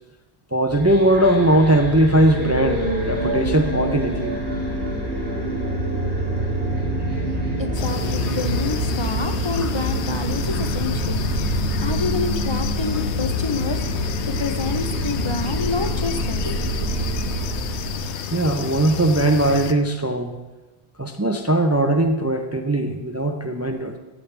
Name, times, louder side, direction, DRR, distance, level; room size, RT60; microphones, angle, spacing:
voice 1, 0.5-4.3 8.2-8.4 9.5-9.7 10.1-10.2 10.5-10.6 12.9-13.0 18.3-20.4 21.0-24.0, right 1 dB, 20° right, 4 dB, 0.5 m, -20 dB
sound 1, 0.7-18.1, right 1 dB, 85° right, 2.9 m, -26 dB
sound 2, 2.4-10.0, right 2 dB, 65° right, 1.3 m, -31 dB
voice 2, 7.5-16.8, left 4 dB, 35° left, 6 dB, 0.5 m, -28 dB
sound 3, 7.7-19.7, left 9 dB, 90° left, 0.9 m, -31 dB
14.0 x 8.4 x 3.4 m, 1.1 s
omnidirectional pair, 1.1 m